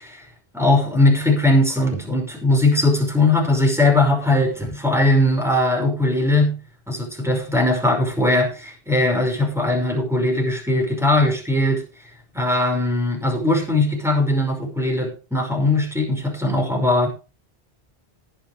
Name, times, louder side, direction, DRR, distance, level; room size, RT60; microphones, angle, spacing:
voice 1, 0.5-6.6 6.9-11.8 12.3-17.1, left 2 dB, ahead, 1 dB, 5.5 m, -19 dB
20.0 x 7.4 x 3.3 m, 0.32 s
omnidirectional pair, 1.1 m